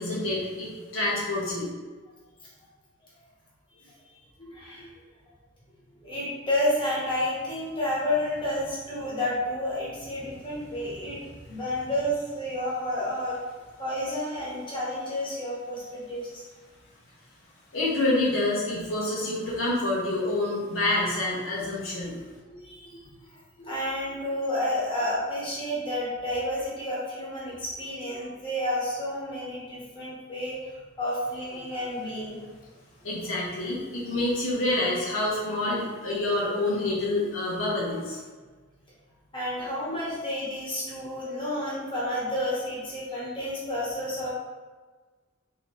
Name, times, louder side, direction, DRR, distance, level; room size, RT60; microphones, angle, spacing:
voice 1, 0.0-1.7 17.7-22.1 33.0-38.2, left 2 dB, 75° left, -5 dB, 0.9 m, -27 dB
voice 2, 4.4-4.9 6.0-13.4 13.8-16.4 22.1-22.2 22.5-23.3 23.6-30.7 31.0-32.4 34.1-34.2 39.3-44.3, left 1 dB, 25° left, -7 dB, 1.2 m, -30 dB
3.7 x 2.8 x 3.0 m, 1.4 s
head